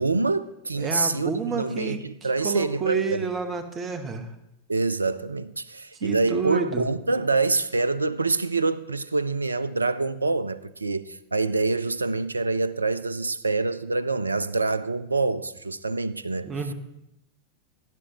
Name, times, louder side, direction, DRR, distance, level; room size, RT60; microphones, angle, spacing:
voice 1, 0.0-3.3 4.7-16.5, right 3 dB, 80° right, 0.4 m, -26 dB
voice 2, 0.8-2.0 2.4-4.3 6.0-6.8 16.4-16.7, right 5 dB, 25° right, 0.9 m, -29 dB
12.0 x 10.0 x 3.0 m
figure-of-eight pair, 90°, 0 cm